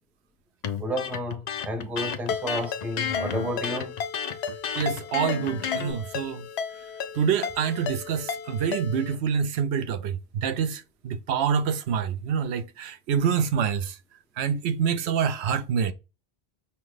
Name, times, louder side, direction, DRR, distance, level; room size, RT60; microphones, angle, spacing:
Electric guitar, 0.6-5.9, left 7 dB, 55° left, 0.5 m, -32 dB
voice 1, 0.8-3.9, equal, ahead, 0.6 m, -31 dB
Ringtone, 2.3-9.2, left 6 dB, 80° left, 0.8 m, -34 dB
voice 2, 4.7-6.4 7.1-13.9 14.4-15.9, right 7 dB, 80° right, 0.8 m, -26 dB
5.8 x 2.1 x 3.1 m
omnidirectional pair, 1.1 m